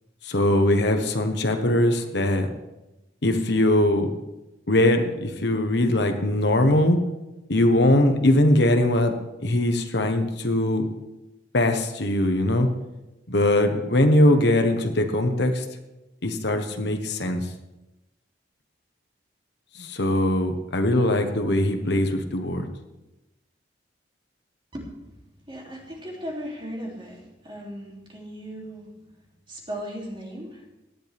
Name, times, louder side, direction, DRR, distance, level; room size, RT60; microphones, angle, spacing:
voice 1, 0.2-2.5 3.2-4.1 4.7-7.0 7.5-9.1 9.4-10.9 11.5-12.7 13.3-15.6 16.2-17.5 19.7-22.7, left 1 dB, 60° left, 5 dB, 1.3 m, -21 dB
voice 2, 24.7-25.2 25.5-28.9 29.5-30.6, equal, 25° right, -2 dB, 3.2 m, -37 dB
17.5 x 11.5 x 3.6 m, 0.98 s
head